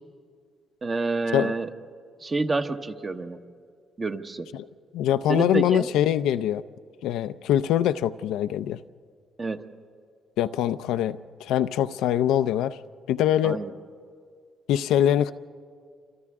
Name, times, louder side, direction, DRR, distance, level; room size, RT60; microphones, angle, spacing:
voice 1, 0.8-1.7 2.2-3.4 4.0-4.5 5.3-5.9 9.4-9.7 13.4-13.7, right 3 dB, 30° right, 7 dB, 1.1 m, -28 dB
voice 2, 4.9-6.6 7.0-8.8 10.4-12.8 13.1-13.6 14.7-15.3, left 11 dB, 90° left, 11 dB, 0.5 m, -23 dB
28.5 x 26.0 x 3.6 m, 2.1 s
cardioid pair, 90°, 0 cm